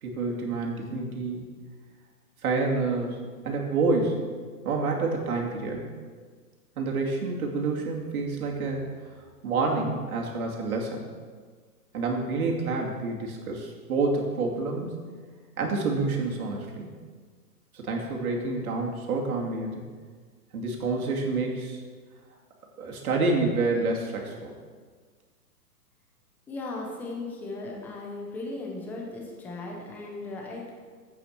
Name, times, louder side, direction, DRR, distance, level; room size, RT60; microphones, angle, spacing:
voice 1, 0.0-1.5 2.4-4.2 4.6-5.9 6.8-8.8 9.4-11.0 11.9-14.9 15.6-16.9 17.7-19.8 20.5-21.8 22.8-24.5, right 3 dB, 60° right, -1 dB, 2.5 m, -28 dB
voice 2, 26.5-30.7, left 2 dB, 5° left, -1 dB, 0.5 m, -37 dB
8.3 x 7.2 x 6.5 m, 1.6 s
hypercardioid pair, 135°, 48 cm